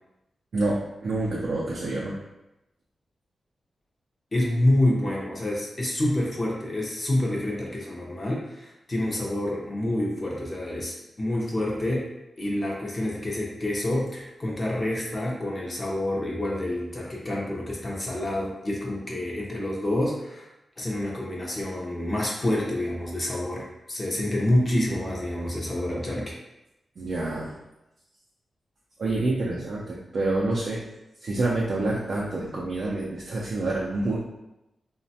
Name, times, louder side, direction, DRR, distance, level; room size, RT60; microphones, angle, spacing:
voice 1, 0.5-2.2 27.0-27.5 29.0-30.8 31.2-34.2, right 2 dB, 55° right, -4 dB, 0.4 m, -27 dB
voice 2, 4.3-12.1 12.4-20.5 20.8-26.3, left 1 dB, 30° left, -3 dB, 0.5 m, -27 dB
3.1 x 2.1 x 2.7 m, 0.93 s
wide cardioid pair, 130°, 0 cm